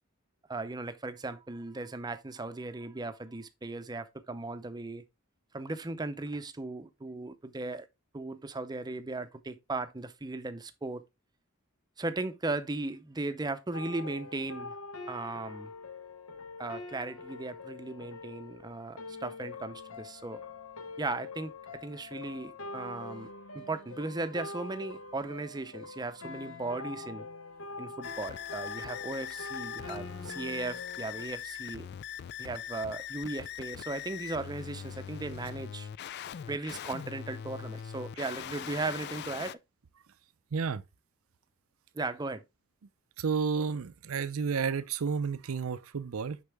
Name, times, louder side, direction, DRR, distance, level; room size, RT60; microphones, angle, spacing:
voice 1, 0.5-5.0 5.5-7.9 8.1-11.0 12.0-14.8 15.1-15.7 16.6-20.4 21.0-21.5 21.8-23.3 23.5-27.3 27.8-31.9 32.4-35.9 36.5-39.6 41.9-42.4, right 2 dB, 20° right, 0.6 m, -37 dB
sound 1, 13.7-31.3, left 3 dB, 75° left, 1.0 m, -44 dB
sound 2, 28.0-39.5, left 9 dB, 50° left, 0.3 m, -41 dB
voice 2, 40.5-40.8 43.2-46.4, right 5 dB, 80° right, 0.5 m, -31 dB
6.6 x 5.5 x 3.4 m
head